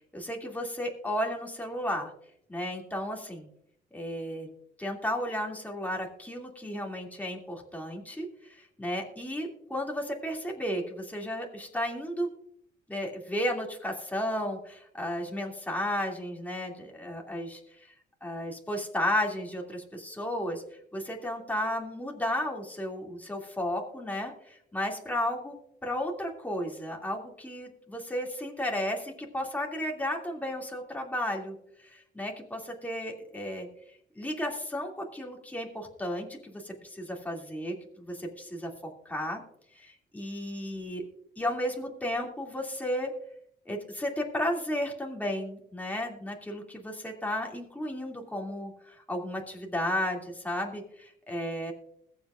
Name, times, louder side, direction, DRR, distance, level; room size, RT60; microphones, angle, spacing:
voice 1, 0.1-2.1 2.5-3.5 3.9-4.5 4.8-12.3 12.9-17.9 18.2-20.6 20.9-25.6 25.8-33.7 34.2-38.7 39.0-39.4 39.7-41.0 41.4-43.1 43.7-51.7, left 1 dB, 10° left, 0 dB, 2.6 m, -33 dB
21.5 x 7.2 x 2.5 m, 0.71 s
cardioid pair, 90°, 20 cm